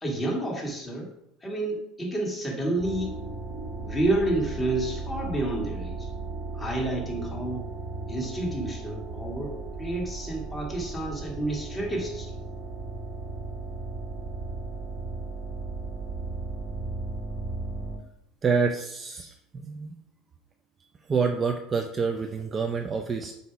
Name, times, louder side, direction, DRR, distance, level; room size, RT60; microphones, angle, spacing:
voice 1, 0.0-1.1 1.4-3.1 3.8-6.1 6.5-7.6 8.1-12.3, right 1 dB, 15° left, -2 dB, 1.9 m, -29 dB
sound 1, 2.8-18.0, right 3 dB, 40° right, 1.5 m, -36 dB
voice 2, 18.4-19.9 21.1-23.3, right 5 dB, 25° right, 4 dB, 0.5 m, -27 dB
8.0 x 2.8 x 4.7 m, 0.77 s
supercardioid pair, 120°, 0 cm